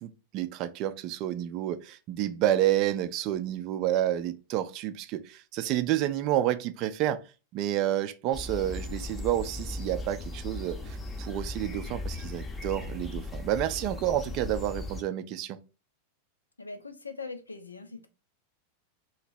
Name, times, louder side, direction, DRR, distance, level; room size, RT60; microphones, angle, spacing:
voice 1, 0.0-7.2 7.5-15.6, right 12 dB, 40° right, 0.4 m, -29 dB
sound 1, 8.3-15.0, left 2 dB, 15° left, 0.7 m, -37 dB
voice 2, 16.6-18.1, left 4 dB, 80° left, 0.5 m, -41 dB
2.9 x 2.8 x 4.3 m
figure-of-eight pair, 90°, 0 cm